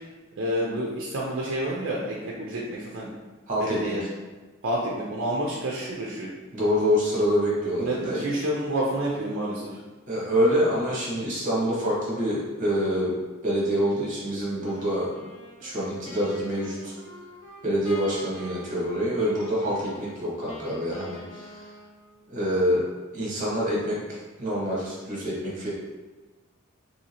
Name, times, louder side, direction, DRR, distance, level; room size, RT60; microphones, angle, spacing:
voice 1, 0.4-3.1 3.6-4.0 4.6-6.3 7.7-9.8, right 1 dB, 60° right, -4 dB, 0.4 m, -29 dB
voice 2, 3.5-4.0 6.5-8.2 10.1-13.1 13.4-15.1 15.6-17.0 17.6-21.7 22.3-22.8 23.1-24.0 24.4-25.7, equal, 40° right, -5 dB, 1.0 m, -26 dB
Wind instrument woodwind instrument, 14.6-22.3, left 1 dB, 60° left, 0.7 m, -46 dB
2.7 x 2.7 x 2.8 m, 1.2 s
head